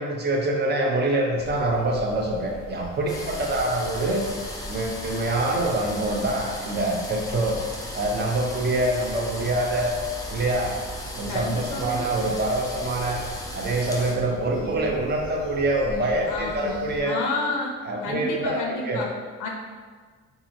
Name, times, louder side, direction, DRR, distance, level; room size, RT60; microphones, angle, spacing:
voice 1, 0.0-4.2 4.7-7.6 7.9-9.9 10.3-10.7 11.2-13.2 13.5-17.2 17.8-18.6 18.8-19.0, right 2 dB, 35° right, 0 dB, 0.5 m, -25 dB
sound 1, 1.3-17.0, equal, 80° right, 1.0 m, -42 dB
sound 2, 3.1-14.1, left 1 dB, 10° left, 0.5 m, -36 dB
voice 2, 11.3-12.1 14.5-14.8 16.3-16.8 17.0-17.8 18.0-19.1 19.4-19.5, left 3 dB, 75° left, 0 dB, 0.5 m, -31 dB
2.8 x 2.5 x 2.6 m, 1.5 s
cardioid pair, 90°, 30 cm